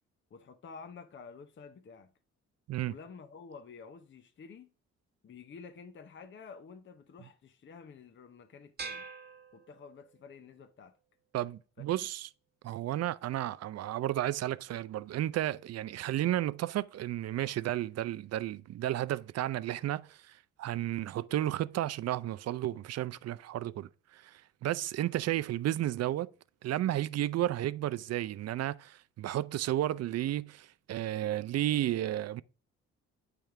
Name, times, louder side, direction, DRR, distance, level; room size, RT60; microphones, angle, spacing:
voice 1, 0.3-2.1 2.8-4.7 5.2-9.1 9.5-11.0 11.9-12.1, left 5 dB, 40° left, 0.7 m, -50 dB
sound 1, 8.8-10.3, right 4 dB, 35° right, 1.2 m, -44 dB
voice 2, 11.3-12.3 12.6-26.3 26.6-32.4, right 13 dB, 55° right, 0.5 m, -33 dB
8.9 x 3.4 x 4.6 m
cardioid pair, 90°, 30 cm